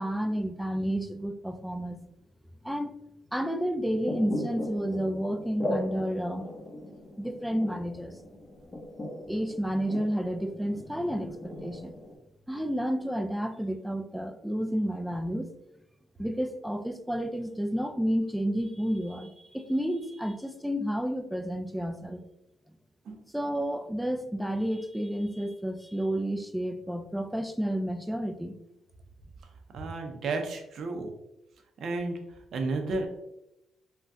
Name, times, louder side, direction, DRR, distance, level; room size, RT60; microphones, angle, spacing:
voice 1, 0.0-2.0 2.6-2.9 3.3-6.5 7.2-8.1 9.3-11.9 12.5-15.5 16.2-22.2 23.3-28.5, equal, 5° right, 7 dB, 0.3 m, -31 dB
sound 1, 3.9-12.2, left 1 dB, 25° left, 0.9 m, -38 dB
voice 2, 29.7-31.1 31.8-32.2 32.5-33.1, right 3 dB, 60° right, 4 dB, 0.5 m, -32 dB
3.4 x 2.2 x 2.5 m, 0.86 s
cardioid pair, 90°, 0 cm